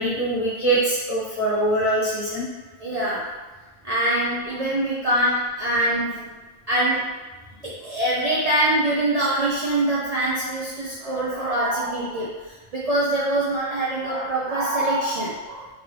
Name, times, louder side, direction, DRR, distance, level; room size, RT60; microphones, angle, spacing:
voice 1, 0.0-2.5, right 1 dB, 30° left, -8 dB, 0.9 m, -23 dB
voice 2, 2.8-3.4 3.8-6.3 6.7-7.2 7.6-15.7, right 1 dB, 80° right, -7 dB, 0.3 m, -24 dB
3.0 x 2.6 x 3.0 m, 1.2 s
omnidirectional pair, 1.3 m